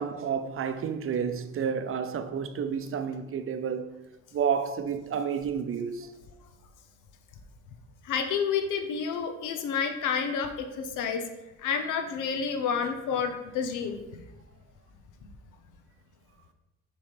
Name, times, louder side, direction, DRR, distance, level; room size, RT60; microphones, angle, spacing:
voice 1, 0.0-3.9 4.3-6.1, right 7 dB, 45° right, 0.6 m, -30 dB
voice 2, 8.0-11.2 11.6-14.2 15.2-15.3, left 6 dB, 85° left, 0.8 m, -30 dB
7.1 x 3.2 x 5.1 m
cardioid pair, 90°, 30 cm